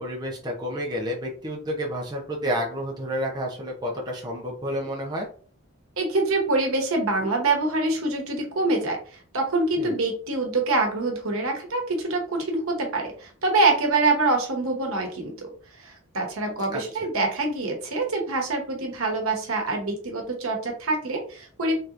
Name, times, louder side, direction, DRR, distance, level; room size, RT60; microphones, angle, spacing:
voice 1, 0.0-5.3 9.8-10.0 16.7-16.8, equal, 20° right, -1 dB, 0.6 m, -30 dB
voice 2, 6.0-9.0 9.3-15.5 15.8-21.7, right 2 dB, 85° right, 2 dB, 1.0 m, -25 dB
3.4 x 2.9 x 2.5 m, 0.42 s
head